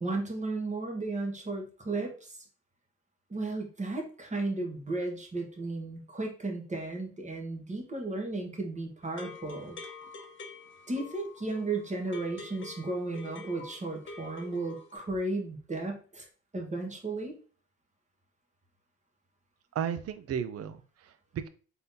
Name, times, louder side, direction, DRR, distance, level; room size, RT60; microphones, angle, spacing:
voice 1, 0.0-2.3 3.3-9.8 10.9-16.3 16.5-17.4, right 2 dB, 25° right, 1 dB, 1.3 m, -34 dB
sound 1, 9.0-15.0, left 3 dB, 40° left, 0.9 m, -47 dB
voice 2, 19.7-21.5, right 8 dB, 50° right, 11 dB, 0.5 m, -34 dB
3.9 x 3.8 x 2.7 m, 0.40 s
cardioid pair, 90°, 30 cm